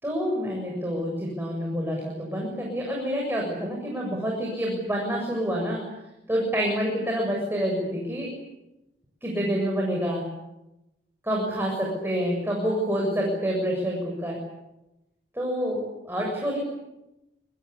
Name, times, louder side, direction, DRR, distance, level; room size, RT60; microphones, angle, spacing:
voice 1, 0.0-5.8 6.3-8.3 9.2-10.2 11.2-14.4 15.3-15.8 16.0-16.6, equal, 15° right, -1 dB, 7.3 m, -27 dB
27.0 x 24.0 x 8.4 m, 0.94 s
head